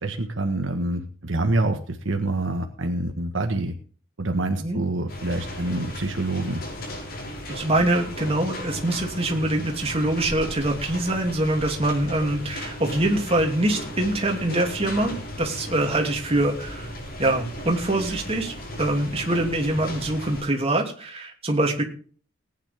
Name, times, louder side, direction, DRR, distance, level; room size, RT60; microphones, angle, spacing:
voice 1, 0.0-3.7 4.2-6.6, right 2 dB, 70° right, 5 dB, 1.5 m, -26 dB
sound 1, 5.1-20.4, left 1 dB, 50° left, 6.6 m, -36 dB
voice 2, 7.5-16.9 17.2-21.8, right 1 dB, 30° right, 1 dB, 2.9 m, -24 dB
18.5 x 9.6 x 3.6 m, 0.42 s
head